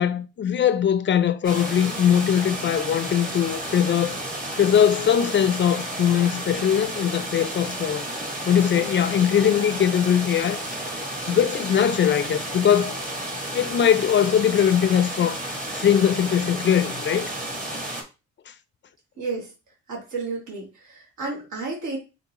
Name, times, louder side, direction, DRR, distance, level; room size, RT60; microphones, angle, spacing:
voice 1, 0.0-4.2 4.6-8.0 8.5-10.8 11.3-13.0 13.5-15.4 15.7-17.3, left 9 dB, 40° left, 0.5 m, -21 dB
sound 1, 1.4-18.0, right 1 dB, 25° right, 1.3 m, -32 dB
voice 2, 19.2-19.5 19.9-22.0, right 3 dB, 70° right, 2.0 m, -32 dB
3.6 x 3.6 x 3.0 m
cardioid pair, 90°, 30 cm